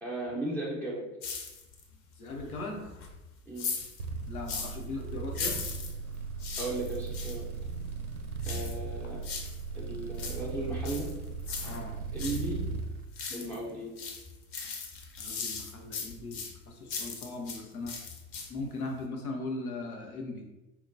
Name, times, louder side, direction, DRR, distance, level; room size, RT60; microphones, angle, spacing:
voice 1, 0.0-1.1 3.5-3.7 6.6-7.5 8.4-9.2 9.7-11.1 12.1-12.6 13.3-13.9, right 1 dB, 5° left, -5 dB, 0.5 m, -36 dB
sound 1, 1.2-1.9 2.3-4.9 5.3-7.4 8.4-9.6 10.0-12.5 12.8-13.7 14.0-17.6 17.9-18.7 19.0-19.1, left 5 dB, 40° left, 0.7 m, -39 dB
voice 2, 2.2-2.8 4.3-5.6 11.6-12.0 13.3-13.5 15.2-18.0 18.5-20.5, left 2 dB, 85° left, 1 dB, 0.7 m, -39 dB
sound 2, 4.0-12.9, right 4 dB, 90° right, 0.5 m, -37 dB
4.3 x 2.1 x 2.5 m, 1.0 s
figure-of-eight pair, 85°, 43 cm